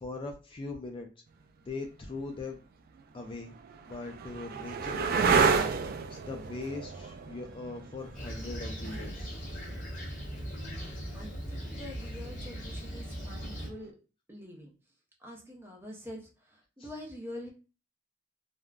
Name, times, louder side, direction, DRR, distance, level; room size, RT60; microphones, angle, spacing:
voice 1, 0.0-1.1 1.6-2.6 3.1-3.5 3.8-9.4 16.8-16.9, left 3 dB, 30° left, 3 dB, 0.3 m, -40 dB
sound 1, 2.1-2.2 3.0-10.6 12.9-13.5, right 5 dB, 50° right, 0.3 m, -31 dB
Fixed-wing aircraft airplane, 8.1-13.7, equal, 45° left, 1.2 m, -39 dB
voice 2, 10.3-14.0 14.3-14.7 15.2-17.5, left 1 dB, 10° right, 0 dB, 0.6 m, -46 dB
3.3 x 2.0 x 2.4 m, 0.34 s
head